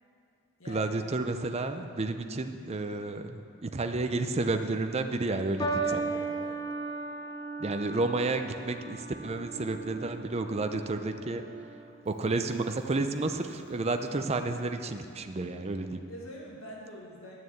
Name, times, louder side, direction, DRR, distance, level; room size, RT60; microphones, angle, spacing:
voice 1, 0.7-6.1 7.6-11.4 12.1-16.0, right 2 dB, 30° right, 7 dB, 0.5 m, -31 dB
sound 1, 5.6-12.1 13.0-13.4, right 3 dB, 20° left, 0.8 m, -37 dB
voice 2, 5.8-6.6 16.1-17.4, equal, 75° left, -3 dB, 1.8 m, -44 dB
10.5 x 6.7 x 7.9 m, 2.4 s
head